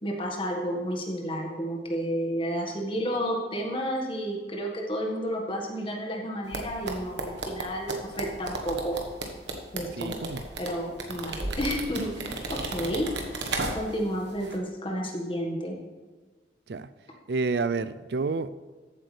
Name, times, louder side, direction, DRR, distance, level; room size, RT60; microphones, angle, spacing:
voice 1, 0.0-9.0 9.7-10.1 10.6-13.1 13.7-15.8, equal, 30° left, 0 dB, 1.6 m, -31 dB
sound 1, 6.5-14.1 14.4-14.5, right 2 dB, 85° right, 1.3 m, -34 dB
voice 2, 10.0-10.4 16.7-16.9 17.3-18.5, right 4 dB, 70° right, 14 dB, 0.4 m, -29 dB
14.0 x 8.4 x 3.4 m, 1.3 s
head